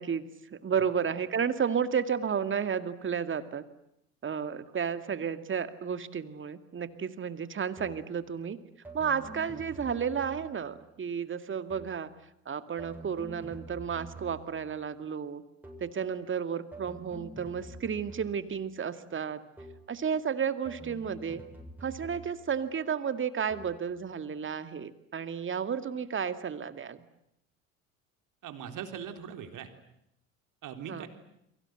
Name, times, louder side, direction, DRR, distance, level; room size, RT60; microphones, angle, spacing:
voice 1, 0.0-3.6 4.2-8.6 8.9-12.1 12.5-15.4 15.8-19.4 19.9-21.4 21.8-27.0 30.9-31.1, right 7 dB, 30° right, 11 dB, 2.2 m, -32 dB
sound 1, 7.8-8.2 8.8-10.8 11.7-12.1 12.8-14.7 15.6-16.0 16.7-18.7 19.6-20.0 20.7-22.6 23.5-23.9, right 2 dB, 5° right, 7.9 m, -48 dB
voice 2, 28.4-29.7 30.6-31.1, right 8 dB, 45° right, 7 dB, 3.9 m, -40 dB
30.0 x 24.0 x 8.0 m, 0.79 s
figure-of-eight pair, 65°, 42 cm